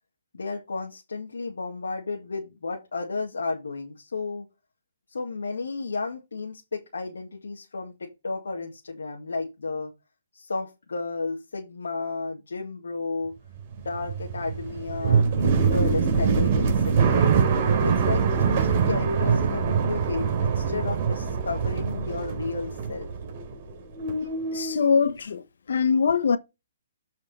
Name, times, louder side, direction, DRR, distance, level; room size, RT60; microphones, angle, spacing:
voice 1, 0.3-4.5 5.1-9.9 10.3-13.3 13.8-17.3 17.8-23.1, left 3 dB, 90° left, 2.1 m, -33 dB
sound 1, 13.6-23.7 24.0-24.8, right 5 dB, 40° right, 3.7 m, -24 dB
voice 2, 24.5-25.4 25.7-26.4, left 6 dB, 70° left, 1.1 m, -22 dB
8.0 x 5.2 x 4.3 m
hypercardioid pair, 150°, 0 cm